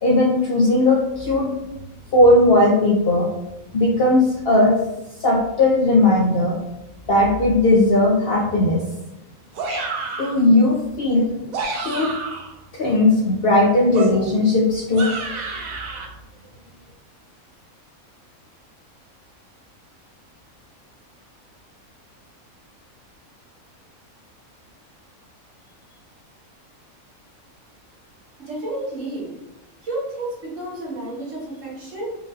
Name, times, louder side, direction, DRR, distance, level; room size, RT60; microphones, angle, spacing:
voice 1, 0.0-1.5 2.1-3.3 3.7-4.8 5.2-6.6 7.1-8.8 10.2-11.3 11.7-12.1 12.7-15.1 15.4-15.6, left 2 dB, 60° left, -3 dB, 0.6 m, -17 dB
sound 1, 9.5-10.4 11.3-12.5 13.9-16.1, right 3 dB, 85° right, 1.1 m, -29 dB
voice 2, 28.4-29.3 29.8-32.1, right 2 dB, 65° right, -5 dB, 1.6 m, -31 dB
4.6 x 2.5 x 2.5 m, 0.95 s
omnidirectional pair, 1.5 m